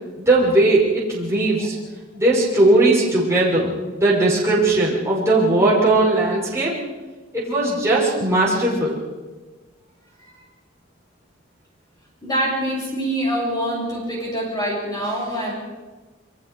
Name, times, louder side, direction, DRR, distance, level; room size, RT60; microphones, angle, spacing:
voice 1, 0.2-1.7 2.1-6.8 7.3-9.0, right 2 dB, 15° right, -6 dB, 6.0 m, -18 dB
voice 2, 12.2-15.5, equal, 20° left, -3 dB, 7.2 m, -25 dB
27.5 x 24.0 x 4.8 m, 1.3 s
head